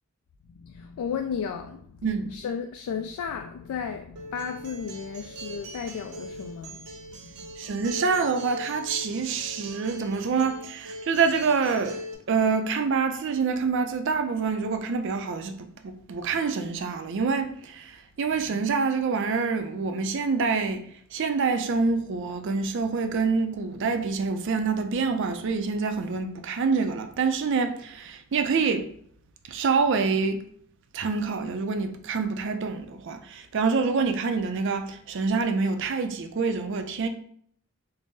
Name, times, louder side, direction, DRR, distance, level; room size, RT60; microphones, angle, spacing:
voice 1, 0.5-6.9 7.2-7.5 18.3-18.4, left 6 dB, 85° left, 0.3 m, -34 dB
voice 2, 2.0-2.3 7.6-12.0 12.3-20.8 21.1-28.9 29.5-30.4 30.9-37.1, right 4 dB, 55° right, 0.4 m, -26 dB
Acoustic guitar, 4.2-12.1, equal, 90° right, 0.8 m, -41 dB
3.9 x 2.0 x 3.6 m
head